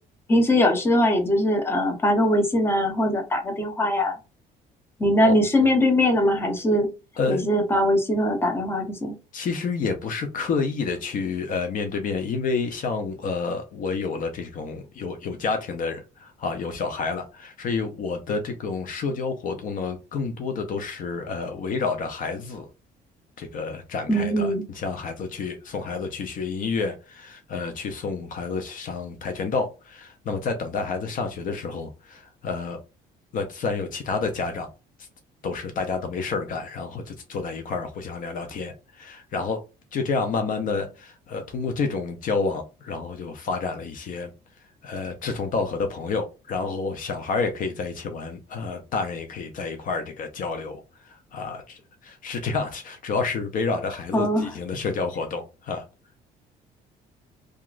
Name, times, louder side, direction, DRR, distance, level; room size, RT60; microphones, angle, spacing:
voice 1, 0.3-4.2 5.0-6.9 7.3-9.1 24.1-24.6 54.1-54.5, left 1 dB, 15° left, 0.8 m, -21 dB
voice 2, 9.3-22.7 23.4-32.8 33.3-34.7 35.4-39.6 39.9-44.3 44.8-55.8, left 4 dB, 55° left, 0.6 m, -29 dB
2.8 x 2.4 x 2.4 m
cardioid pair, 110°, 17 cm